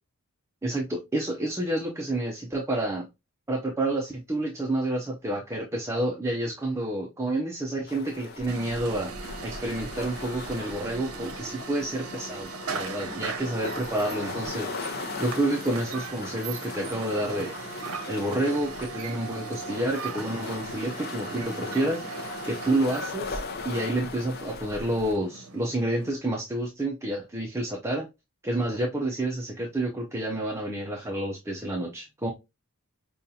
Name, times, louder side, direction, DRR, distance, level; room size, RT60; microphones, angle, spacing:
voice 1, 0.6-3.1 3.5-9.1 9.4-14.7 15.2-17.6 18.1-22.0 22.4-28.1 28.4-32.3, right 1 dB, 10° right, 0.4 m, -29 dB
sound 1, 7.9-25.1, left 4 dB, 45° left, 0.6 m, -39 dB
sound 2, 8.5-26.1, right 5 dB, 80° right, 0.6 m, -39 dB
5.2 x 2.3 x 2.6 m
head